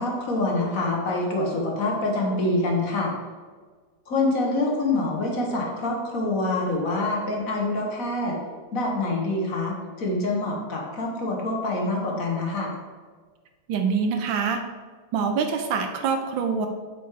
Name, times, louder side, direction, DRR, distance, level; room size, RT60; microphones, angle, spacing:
voice 1, 0.0-3.1 4.1-8.4 8.7-12.7, left 2 dB, 45° left, -1 dB, 1.4 m, -26 dB
voice 2, 13.7-14.6 15.1-16.7, right 5 dB, 75° right, 6 dB, 1.2 m, -25 dB
7.7 x 4.7 x 4.7 m, 1.5 s
omnidirectional pair, 2.3 m